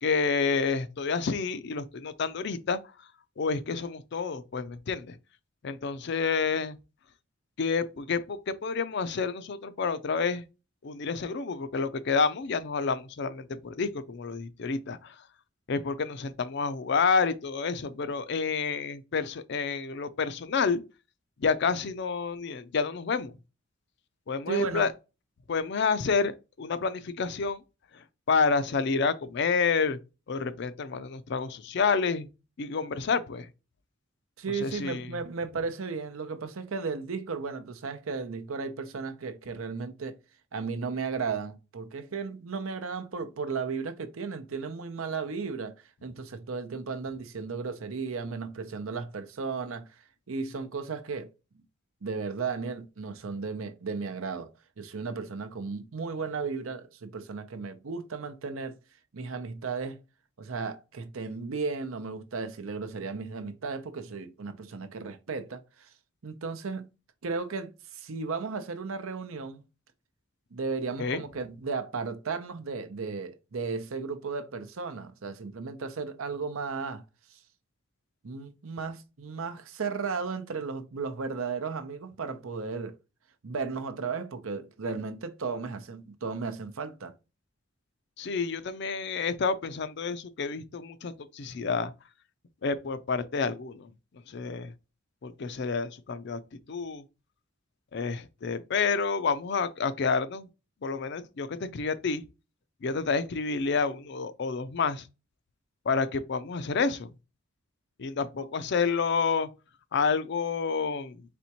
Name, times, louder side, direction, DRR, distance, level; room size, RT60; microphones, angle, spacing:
voice 1, 0.0-2.8 3.4-5.2 5.6-6.8 7.6-10.4 10.8-15.1 15.7-20.8 21.4-23.3 24.3-24.9 25.5-26.3 26.6-27.6 27.9-30.0 30.3-32.3 32.6-33.5 34.5-35.1 71.0-71.2 88.2-91.9 92.6-93.9 94.3-94.7 95.2-96.4 96.7-97.0 97.9-100.5 100.8-102.2 102.8-105.1 105.9-107.1 108.0-109.5 109.9-111.4, left 5 dB, 55° left, 0.4 m, -29 dB
voice 2, 24.5-24.9 34.4-40.2 40.5-45.7 46.0-49.9 50.3-51.6 52.0-54.5 54.8-58.7 59.1-60.0 60.4-65.9 66.2-66.9 67.2-69.6 70.5-77.0 78.2-83.0 83.4-87.1, right 4 dB, 80° right, 0.7 m, -35 dB
4.3 x 3.4 x 2.8 m
head